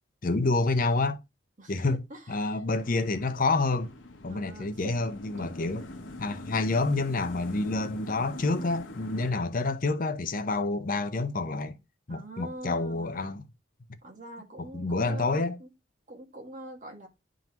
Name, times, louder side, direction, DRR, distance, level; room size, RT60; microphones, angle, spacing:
voice 1, 0.2-1.2 1.7-3.9 4.2-5.8 6.2-11.8 12.1-13.4 14.6-15.6, left 3 dB, 45° left, 0.7 m, -28 dB
voice 2, 1.6-2.6 4.3-5.0 5.3-5.6 12.1-13.3 14.0-15.7 16.1-17.1, right 1 dB, 45° right, 1.8 m, -44 dB
sound 1, 2.8-9.3, left 1 dB, 80° left, 1.2 m, -44 dB
10.5 x 3.8 x 2.9 m
head